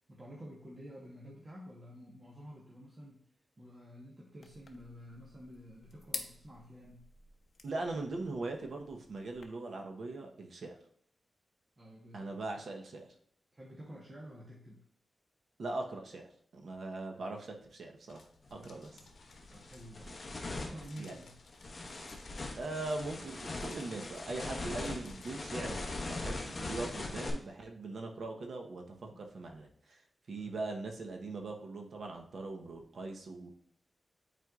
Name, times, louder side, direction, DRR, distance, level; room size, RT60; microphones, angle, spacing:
voice 1, 0.1-3.2 3.6-7.1 11.8-12.3 13.5-14.8 18.6-19.0 19.5-20.1 20.4-21.4 30.3-30.6, equal, 30° right, -4 dB, 1.1 m, -50 dB
sound 1, 4.4-9.4, left 4 dB, 55° left, 0.7 m, -49 dB
voice 2, 7.6-10.8 12.1-13.1 15.6-18.9 20.1-20.2 21.0-21.2 22.5-30.0 30.3-33.5, right 2 dB, 65° right, 2 dB, 0.9 m, -41 dB
sound 2, 18.1-25.4, left 4 dB, 80° left, 0.9 m, -60 dB
sound 3, 18.5-18.6 19.1-27.3, left 2 dB, 30° left, 1.1 m, -41 dB
9.2 x 4.4 x 2.4 m, 0.65 s
wide cardioid pair, 160°, 0 cm